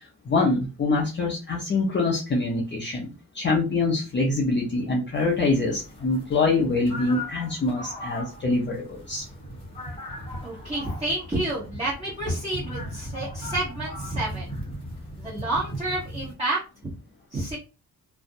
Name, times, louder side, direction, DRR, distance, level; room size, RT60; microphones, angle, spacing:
voice 1, 0.0-9.3, left 3 dB, 30° left, -1 dB, 0.5 m, -25 dB
sound 1, 5.1-16.3, equal, 15° left, 0.9 m, -37 dB
voice 2, 10.4-14.5 15.2-16.9 17.3-17.6, right 2 dB, 15° right, -8 dB, 1.0 m, -30 dB
2.5 x 2.0 x 2.6 m, 0.30 s
wide cardioid pair, 140°, 37 cm